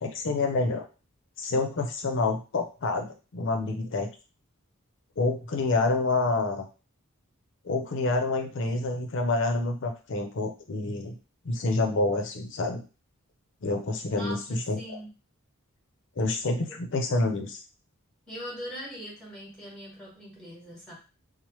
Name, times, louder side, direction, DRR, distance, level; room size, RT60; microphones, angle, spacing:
voice 1, 0.0-0.8 1.4-4.1 5.2-6.7 7.6-11.2 11.4-12.8 13.6-14.8 16.2-17.6, left 3 dB, 60° left, 5 dB, 0.5 m, -28 dB
voice 2, 14.1-15.1 16.7-16.8 18.3-20.9, equal, 5° left, -4 dB, 1.2 m, -41 dB
2.9 x 2.0 x 3.0 m, 0.32 s
head